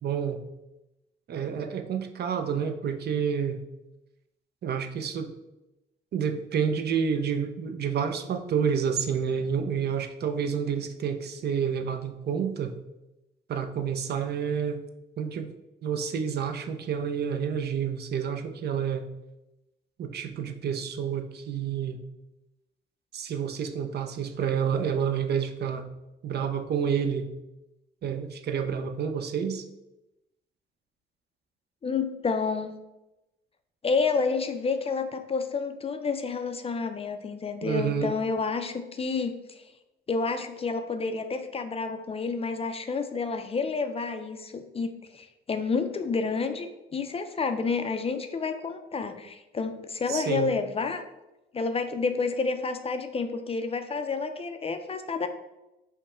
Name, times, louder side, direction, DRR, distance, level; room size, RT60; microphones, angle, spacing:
voice 1, 0.0-0.4 1.3-3.6 4.6-5.3 6.1-12.8 13.5-14.8 15.2-15.5 15.8-19.1 20.0-22.0 23.1-25.8 26.2-27.3 28.0-29.6 37.6-38.2 50.1-50.5, right 7 dB, 55° right, 7 dB, 0.5 m, -29 dB
voice 2, 31.8-32.8 33.8-39.3 40.1-51.0 51.5-55.3, left 4 dB, 30° left, 8 dB, 0.4 m, -29 dB
5.3 x 2.1 x 4.3 m, 0.96 s
cardioid pair, 90°, 20 cm